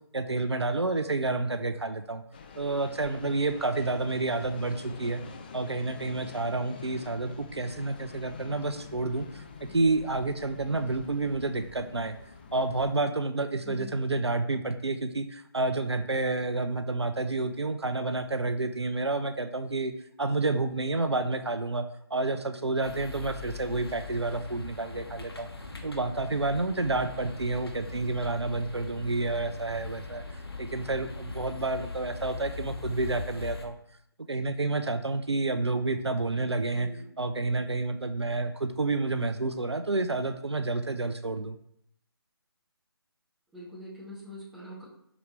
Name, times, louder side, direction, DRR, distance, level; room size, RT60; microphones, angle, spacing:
voice 1, 0.1-2.2 2.6-5.2 5.5-9.4 9.7-12.1 12.5-19.9 20.2-21.8 22.1-25.5 25.8-30.2 30.6-33.8 34.3-36.9 37.2-41.6, right 3 dB, 85° right, 9 dB, 0.5 m, -29 dB
sound 1, 2.3-12.9, left 5 dB, 20° left, 0.4 m, -46 dB
sound 2, 22.8-33.6, left 4 dB, 70° left, 1.2 m, -41 dB
voice 2, 36.7-37.0 43.5-44.8, left 1 dB, 5° right, -10 dB, 1.7 m, -44 dB
6.0 x 4.8 x 3.3 m, 0.72 s
figure-of-eight pair, 145°, 14 cm